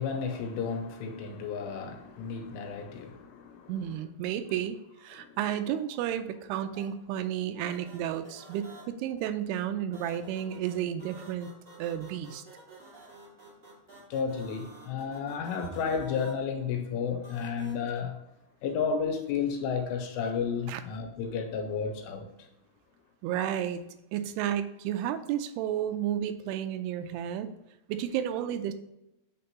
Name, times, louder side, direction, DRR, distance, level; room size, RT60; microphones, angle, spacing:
voice 1, 0.0-3.7 5.1-5.4 14.1-18.2 18.6-22.3, left 6 dB, 85° left, 3.0 m, -32 dB
voice 2, 3.7-11.5 11.8-12.4 20.7-20.8 23.2-23.8 24.1-27.5 27.9-28.7, right 10 dB, 85° right, 2.4 m, -32 dB
sound 1, 6.7-6.8 7.7-8.8 9.9-16.3 17.2-17.7, right 2 dB, 35° right, 0.9 m, -51 dB
8.5 x 3.8 x 2.9 m
omnidirectional pair, 5.0 m